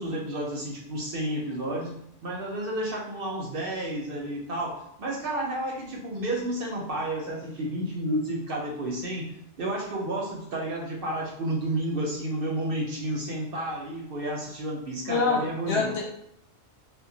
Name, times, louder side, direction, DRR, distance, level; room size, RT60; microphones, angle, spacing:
voice 1, 0.0-1.9 2.2-15.9, right 1 dB, 60° right, -1 dB, 0.7 m, -31 dB
voice 2, 15.1-16.0, left 4 dB, 65° left, -1 dB, 0.8 m, -26 dB
2.1 x 2.0 x 3.7 m, 0.73 s
omnidirectional pair, 1.3 m